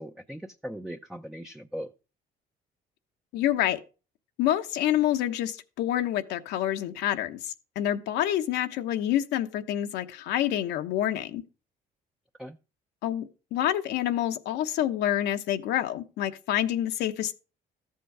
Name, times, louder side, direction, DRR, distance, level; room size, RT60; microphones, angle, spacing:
voice 1, 0.0-1.9 12.4-12.6, equal, ahead, 0.6 m, -39 dB
voice 2, 3.3-3.8 4.4-11.4 13.0-17.3, left 12 dB, 85° left, 1.1 m, -27 dB
13.5 x 7.7 x 4.8 m
cardioid pair, 110°, 17 cm